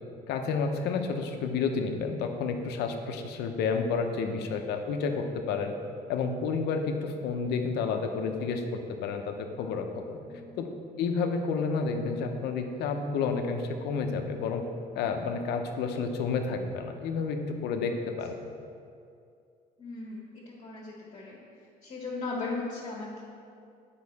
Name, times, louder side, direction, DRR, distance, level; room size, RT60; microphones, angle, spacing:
voice 1, 0.3-5.7 6.1-8.6 9.0-10.2 10.6-10.7 11.0-14.6 14.9-18.4, left 5 dB, 80° left, 5 dB, 0.7 m, -30 dB
voice 2, 10.3-10.6 19.8-21.4 21.8-23.2, left 3 dB, 40° left, -7 dB, 1.5 m, -37 dB
8.4 x 5.5 x 4.1 m, 2.4 s
cardioid pair, 110°, 17 cm